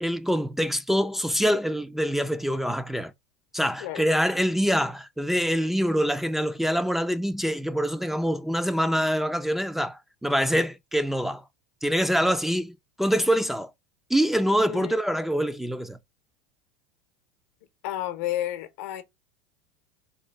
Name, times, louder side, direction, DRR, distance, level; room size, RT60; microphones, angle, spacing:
voice 1, 0.0-3.1 3.5-11.4 11.8-13.7 14.1-16.0, equal, 5° right, 0.3 m, -25 dB
voice 2, 14.6-15.0 17.8-19.0, left 13 dB, 70° left, 0.7 m, -31 dB
3.9 x 2.3 x 3.2 m
hypercardioid pair, 100°, 8 cm